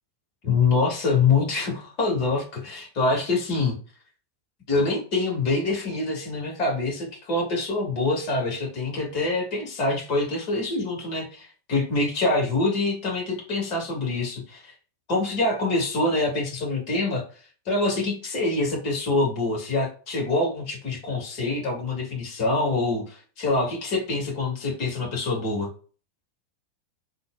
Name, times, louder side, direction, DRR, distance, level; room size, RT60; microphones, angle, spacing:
voice 1, 0.4-3.7 4.7-14.7 15.1-17.2 17.6-25.7, left 3 dB, 45° left, -1 dB, 1.5 m, -25 dB
3.8 x 2.3 x 2.2 m, 0.38 s
figure-of-eight pair, 90°, 0 cm